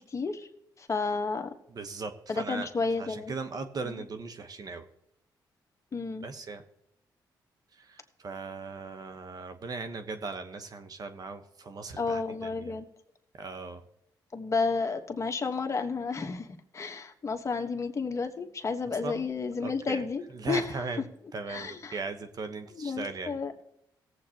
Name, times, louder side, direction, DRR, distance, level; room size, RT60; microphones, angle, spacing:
voice 1, 0.1-0.5 0.8-1.5 2.3-3.3 5.9-6.3 12.0-12.9 14.3-16.5 16.7-20.6 21.5-21.9 22.8-23.5, left 4 dB, 35° left, 5 dB, 1.2 m, -31 dB
voice 2, 1.7-2.7 3.0-4.9 6.2-6.6 7.7-12.8 13.3-13.8 19.0-19.3 19.6-20.0 20.3-21.0 21.3-23.6, right 4 dB, 50° right, 8 dB, 1.1 m, -38 dB
18.0 x 7.8 x 2.9 m, 0.78 s
cardioid pair, 70°, 8 cm